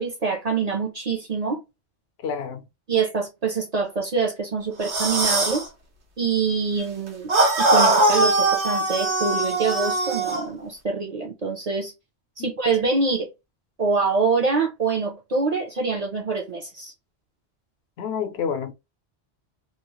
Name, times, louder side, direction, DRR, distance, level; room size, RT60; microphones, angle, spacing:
voice 1, 0.0-1.6 2.9-5.7 6.2-7.3 7.6-11.9 12.4-13.3 13.8-16.9, right 4 dB, 45° right, 0.5 m, -25 dB
voice 2, 2.2-2.6 12.4-12.5 18.0-18.7, left 7 dB, 70° left, 0.8 m, -28 dB
sound 1, 4.8-5.6 7.3-10.5, right 2 dB, 90° right, 1.2 m, -21 dB
2.8 x 2.0 x 2.9 m
omnidirectional pair, 1.1 m